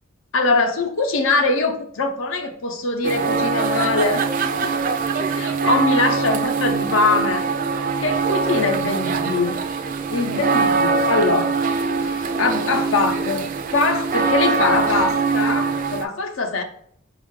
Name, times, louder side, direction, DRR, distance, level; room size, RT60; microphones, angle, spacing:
voice 1, 0.3-4.7 5.3-7.4 8.0-9.6 10.1-11.5 12.0-13.5 13.7-16.6, left 3 dB, 75° left, 6 dB, 0.6 m, -22 dB
sound 1, 3.0-16.0, right 4 dB, 40° right, 0.3 m, -22 dB
5.3 x 2.4 x 3.6 m, 0.66 s
head